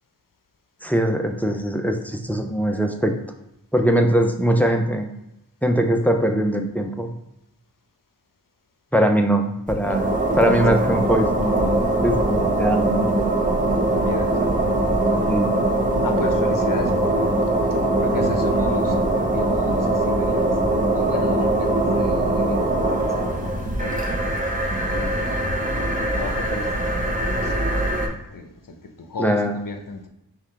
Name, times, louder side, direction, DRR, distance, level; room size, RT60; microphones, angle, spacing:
voice 1, 0.8-3.1 3.7-5.1 5.6-7.1 8.9-11.7 12.0-13.3 15.3-15.5 29.2-29.6, right 1 dB, 5° left, 4 dB, 0.5 m, -21 dB
sound 1, 9.7-28.1, right 1 dB, 20° right, 0.9 m, -22 dB
voice 2, 13.9-15.3 16.0-17.4 17.7-23.3 23.8-24.3 24.9-25.6 26.0-30.1, left 3 dB, 55° left, 5 dB, 0.7 m, -34 dB
5.5 x 2.4 x 3.2 m, 0.84 s
wide cardioid pair, 45°, 39 cm